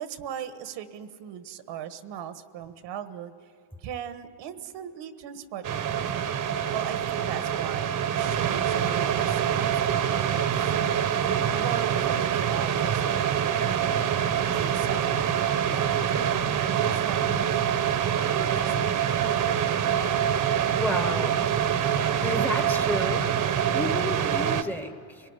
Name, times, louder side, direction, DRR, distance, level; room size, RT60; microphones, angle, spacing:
voice 1, 0.0-3.5 3.8-6.0 6.7-10.4 10.7-11.0 11.6-14.0 14.5-19.4, right 9 dB, 70° right, 10 dB, 1.5 m, -39 dB
sound 1, 5.6-24.6, right 9 dB, 45° right, 1.2 m, -25 dB
voice 2, 20.8-21.4 22.2-23.2 23.7-25.3, left 1 dB, 5° left, 8 dB, 1.2 m, -31 dB
24.5 x 19.5 x 9.7 m, 2.5 s
cardioid pair, 125°, 45 cm